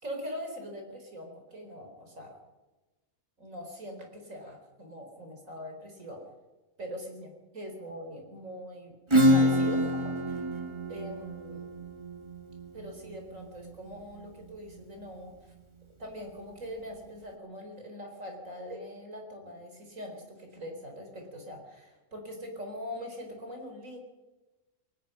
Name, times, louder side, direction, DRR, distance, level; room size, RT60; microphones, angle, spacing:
voice 1, 0.0-2.4 3.4-6.2 6.8-7.3 7.5-8.9 9.3-10.4 10.9-11.7 12.7-15.5 16.0-24.0, equal, 75° right, 3 dB, 5.0 m, -42 dB
Acoustic guitar / Strum, 9.1-14.5, equal, 20° right, 2.4 m, -27 dB
22.5 x 20.5 x 5.7 m, 1.1 s
omnidirectional pair, 1.4 m